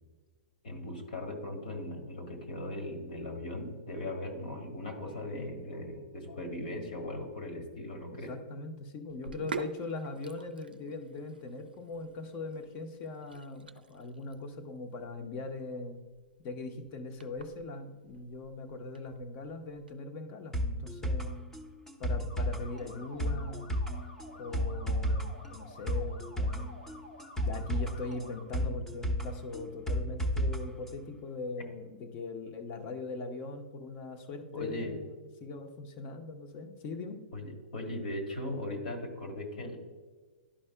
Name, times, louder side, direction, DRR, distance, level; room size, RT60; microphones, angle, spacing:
voice 1, 0.6-8.3 34.5-35.0 37.3-39.8, left 1 dB, 65° left, 3 dB, 1.7 m, -38 dB
voice 2, 8.3-16.0 16.4-21.3 22.0-23.7 24.4-26.8 27.4-37.2, left 3 dB, 40° left, 5 dB, 0.9 m, -41 dB
Sink (filling or washing), 9.1-19.9, right 4 dB, 80° right, 0.4 m, -47 dB
sound 1, 20.5-30.6 30.9-31.0, equal, 10° left, 0.8 m, -33 dB
sound 2, 22.3-28.4, equal, 80° left, 1.2 m, -51 dB
11.5 x 5.3 x 2.2 m, 1.4 s
figure-of-eight pair, 115°, 5 cm